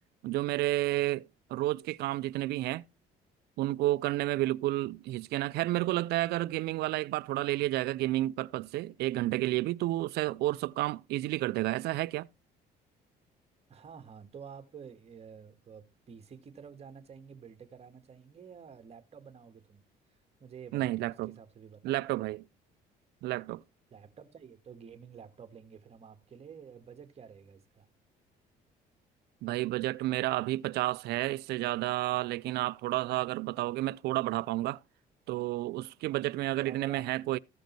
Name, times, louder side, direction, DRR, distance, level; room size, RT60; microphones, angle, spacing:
voice 1, 0.2-2.8 3.6-12.3 20.7-21.3 21.8-22.4 23.2-23.6 29.4-34.8 35.3-37.4, right 17 dB, 75° right, 0.4 m, -31 dB
voice 2, 13.7-19.8 20.4-22.0 23.9-27.9 36.6-37.0, right 6 dB, 40° right, 1.7 m, -50 dB
14.5 x 5.2 x 4.5 m
cardioid pair, 110°, 17 cm